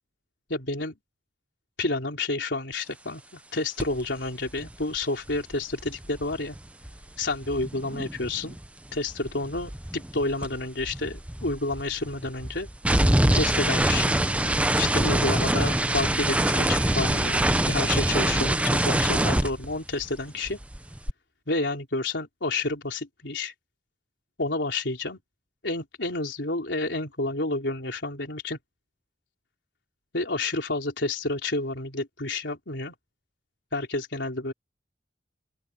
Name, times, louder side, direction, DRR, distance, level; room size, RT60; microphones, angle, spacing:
voice 1, 0.5-1.0 1.8-6.6 7.2-8.6 8.9-12.7 13.3-14.1 14.8-20.6 21.5-23.5 24.4-25.2 25.6-28.6 30.1-32.9 33.7-34.5, left 2 dB, 75° left, 3.7 m, -30 dB
sound 1, 3.8-4.0 4.3-8.7 8.9-20.2 20.4-21.1, right 1 dB, 5° right, 0.7 m, -25 dB
Microwave oven / Alarm, 14.4-18.5, right 24 dB, 65° right, 3.2 m, -43 dB
open air
head